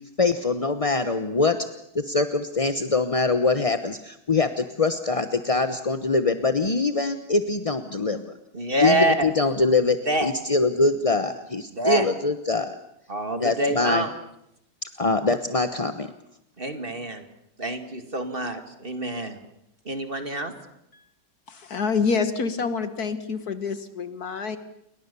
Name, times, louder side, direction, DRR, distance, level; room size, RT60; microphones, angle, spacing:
voice 1, 0.0-1.6 1.9-8.2 8.8-12.8 13.4-14.0 15.0-16.1, left 3 dB, 30° left, 9 dB, 0.7 m, -23 dB
voice 2, 8.5-9.3 10.1-10.3 11.7-12.0 13.1-14.1 16.6-17.2 17.6-19.4 19.9-20.5, right 2 dB, 25° right, 7 dB, 2.3 m, -26 dB
voice 3, 21.5-24.6, left 5 dB, 50° left, 11 dB, 1.8 m, -27 dB
29.5 x 22.5 x 6.9 m, 0.79 s
omnidirectional pair, 2.2 m